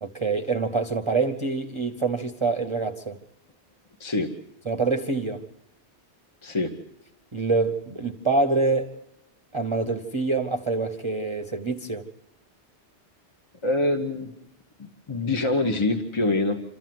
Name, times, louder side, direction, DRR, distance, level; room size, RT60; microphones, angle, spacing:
voice 1, 0.0-3.2 4.7-5.4 7.3-8.9 9.5-12.1, right 3 dB, 30° right, 4 dB, 0.9 m, -26 dB
voice 2, 4.0-4.3 6.4-6.7 13.6-14.3 14.8-16.6, left 2 dB, 25° left, 3 dB, 1.2 m, -25 dB
27.5 x 13.5 x 7.7 m, 0.87 s
omnidirectional pair, 1.1 m